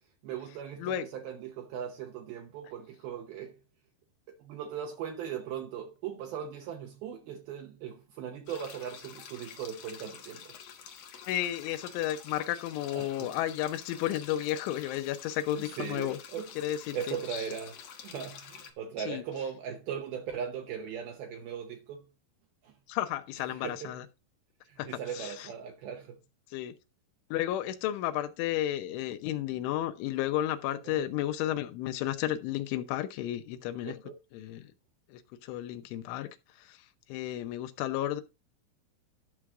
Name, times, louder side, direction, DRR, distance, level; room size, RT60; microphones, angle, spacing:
voice 1, 0.2-3.6 4.3-10.5 12.9-13.3 15.6-16.5 16.9-22.1 22.6-22.7 23.5-23.9 24.7-26.2 30.8-31.1 33.9-34.2, right 8 dB, 85° right, 2.1 m, -39 dB
sound 1, 8.5-18.7, left 8 dB, 65° left, 2.5 m, -48 dB
voice 2, 11.2-16.2 16.6-17.4 19.0-19.2 22.9-24.1 24.8-24.9 25.1-25.5 26.5-26.7 27.3-34.0 34.3-34.6 35.1-36.3 36.6-36.8 37.1-38.2, left 13 dB, 80° left, 3.2 m, -32 dB
12.5 x 6.2 x 3.6 m
omnidirectional pair, 5.6 m